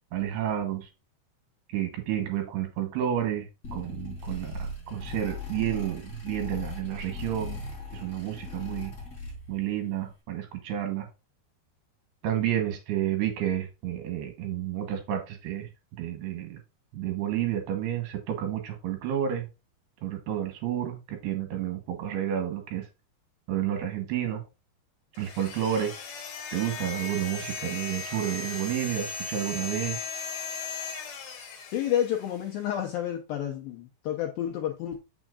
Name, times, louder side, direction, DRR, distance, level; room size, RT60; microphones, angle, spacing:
voice 1, 0.1-0.9 1.7-7.6 7.9-9.0 9.5-11.1 12.2-15.7 16.0-16.6 16.9-19.5 20.0-22.9 23.5-24.4 25.2-25.9 26.5-30.0, right 11 dB, 75° right, 3.0 m, -30 dB
sound 1, 3.6-9.7, left 2 dB, 30° left, 3.0 m, -38 dB
sound 2, 25.1-32.5, left 5 dB, 65° left, 2.6 m, -37 dB
voice 2, 31.7-35.0, left 10 dB, 85° left, 2.0 m, -30 dB
7.1 x 6.3 x 2.4 m
omnidirectional pair, 5.1 m